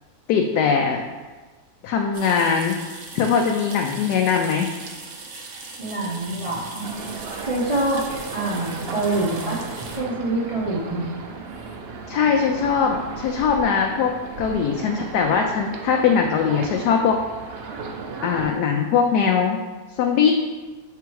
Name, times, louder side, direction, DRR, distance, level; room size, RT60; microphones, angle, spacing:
voice 1, 0.3-1.0 1.8-2.8 3.1-4.7 12.1-17.2 18.2-19.6 20.0-20.3, left 6 dB, 80° left, 2 dB, 1.1 m, -21 dB
sound 1, 2.1-10.0, right 3 dB, 55° right, 1.1 m, -39 dB
voice 2, 5.8-6.9 7.4-8.0 8.3-9.6 10.0-11.1, right 2 dB, 30° right, -5 dB, 0.6 m, -25 dB
sound 2, 6.8-18.5, right 4 dB, 85° right, 0.5 m, -35 dB
5.8 x 3.5 x 4.6 m, 1.3 s
omnidirectional pair, 1.7 m